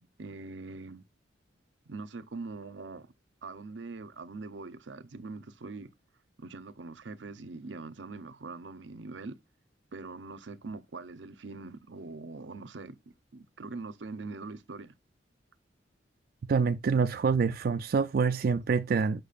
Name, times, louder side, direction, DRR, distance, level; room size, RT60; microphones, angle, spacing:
voice 1, 0.2-1.0 1.9-3.1 3.4-5.9 6.4-9.3 9.9-13.0 13.3-14.9, right 3 dB, 80° right, 0.7 m, -42 dB
voice 2, 16.5-19.2, right 5 dB, 55° right, 0.4 m, -26 dB
6.7 x 6.1 x 2.5 m
head